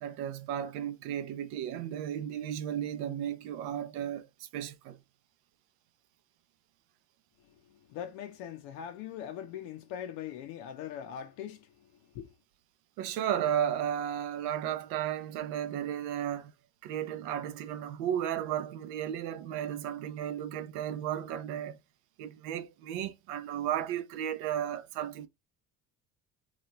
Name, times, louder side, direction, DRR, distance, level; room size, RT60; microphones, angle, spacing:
voice 1, 0.0-5.0 13.0-16.5 16.8-21.8 22.2-25.3, right 10 dB, 80° right, 0.6 m, -34 dB
voice 2, 7.5-12.4, left 9 dB, 75° left, 0.6 m, -42 dB
2.9 x 2.3 x 2.9 m
supercardioid pair, 85°, 36 cm